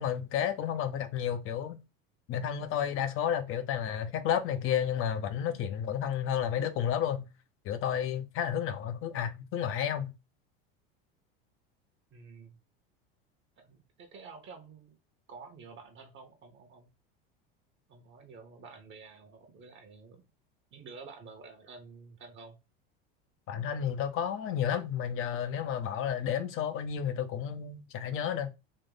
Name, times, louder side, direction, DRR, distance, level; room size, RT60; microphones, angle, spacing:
voice 1, 0.0-1.8 2.3-7.3 7.6-10.1 23.5-28.5, left 9 dB, 45° left, 0.7 m, -31 dB
voice 2, 12.1-12.6 13.6-15.0 15.3-16.9 17.9-20.2 20.7-22.6, right 4 dB, 40° right, 1.0 m, -50 dB
3.6 x 2.5 x 3.9 m
supercardioid pair, 100°, 29 cm